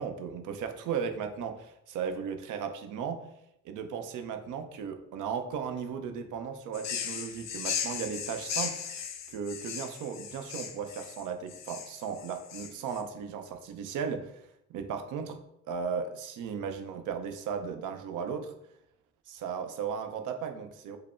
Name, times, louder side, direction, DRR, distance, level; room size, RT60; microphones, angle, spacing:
voice 1, 0.0-3.2 3.6-14.4 14.7-15.4 15.7-18.5 19.3-21.0, right 6 dB, 85° right, 7 dB, 0.6 m, -36 dB
sound 1, 6.7-13.0, left 7 dB, 60° left, 0.6 m, -37 dB
5.2 x 2.0 x 4.2 m, 0.81 s
cardioid pair, 90°, 30 cm